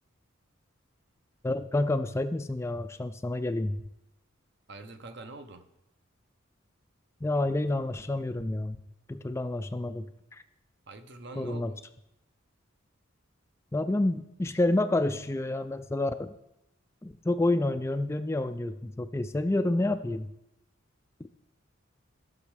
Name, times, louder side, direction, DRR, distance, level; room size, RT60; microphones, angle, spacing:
voice 1, 1.4-3.8 7.2-8.8 9.1-10.1 10.3-10.4 11.4-11.7 13.7-16.3 17.0-20.3, left 2 dB, 15° left, 10 dB, 0.3 m, -29 dB
voice 2, 4.7-5.7 10.9-11.8, right 2 dB, 55° right, 8 dB, 0.8 m, -45 dB
15.0 x 6.3 x 4.9 m, 0.87 s
head